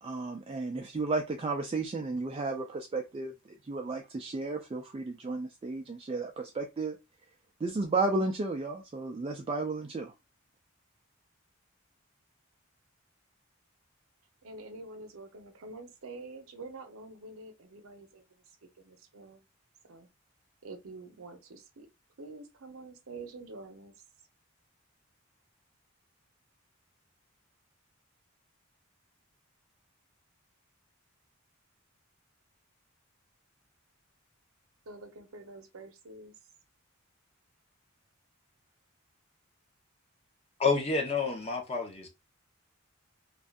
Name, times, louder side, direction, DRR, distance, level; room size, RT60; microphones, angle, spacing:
voice 1, 0.0-3.3 3.7-7.0 7.6-10.1, right 3 dB, 25° right, 0.3 m, -33 dB
voice 2, 14.4-19.5 19.9-20.1 20.6-21.9 22.2-23.9 34.9-36.3, right 3 dB, 85° right, 0.7 m, -47 dB
voice 3, 40.6-42.1, left 4 dB, 30° left, 0.8 m, -29 dB
2.6 x 2.4 x 3.4 m
head